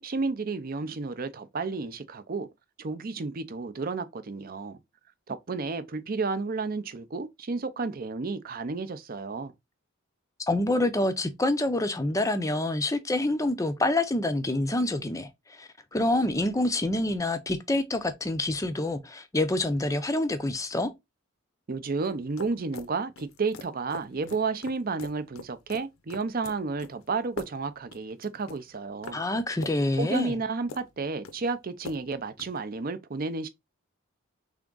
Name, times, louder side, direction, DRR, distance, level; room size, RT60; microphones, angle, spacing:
voice 1, 0.0-2.5 2.8-4.8 5.3-9.5 21.7-29.2 30.0-33.5, right 4 dB, 45° right, 0.5 m, -32 dB
voice 2, 10.5-20.9 29.1-30.3, left 2 dB, 15° left, 0.5 m, -27 dB
sound 1, 22.0-32.6, left 3 dB, 75° left, 0.6 m, -44 dB
3.6 x 3.5 x 3.8 m
head